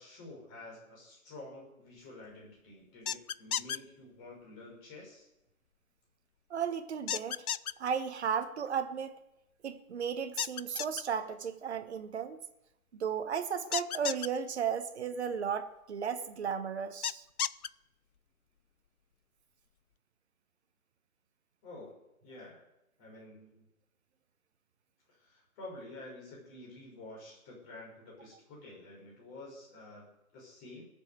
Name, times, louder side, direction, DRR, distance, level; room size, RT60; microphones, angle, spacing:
voice 1, 0.0-5.3 21.6-21.9 22.2-22.6 23.0-23.6 25.1-30.8, left 2 dB, 20° left, -3 dB, 5.9 m, -49 dB
sound 1, 3.1-3.8 7.1-7.7 10.4-11.0 13.7-14.3 17.0-17.7, left 9 dB, 90° left, 0.6 m, -33 dB
voice 2, 6.5-7.4 7.8-9.2 9.6-12.4 13.0-17.2, right 7 dB, 50° right, 9 dB, 1.3 m, -34 dB
18.5 x 7.6 x 7.8 m, 0.89 s
hypercardioid pair, 150°, 42 cm